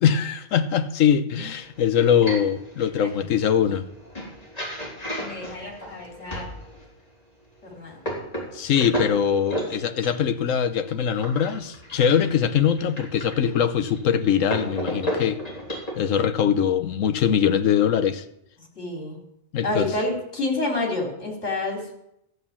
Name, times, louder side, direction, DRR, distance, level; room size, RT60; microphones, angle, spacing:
voice 1, 0.0-3.8 8.5-15.4 16.0-18.2 19.5-19.9, left 8 dB, 75° left, 1.2 m, -22 dB
sound 1, 1.6-6.9 7.5-15.9, equal, 30° left, 3.9 m, -34 dB
voice 2, 5.2-6.5 7.6-8.0 18.6-19.2 19.6-21.9, left 2 dB, 60° left, 3.5 m, -29 dB
13.5 x 8.1 x 7.2 m
omnidirectional pair, 1.4 m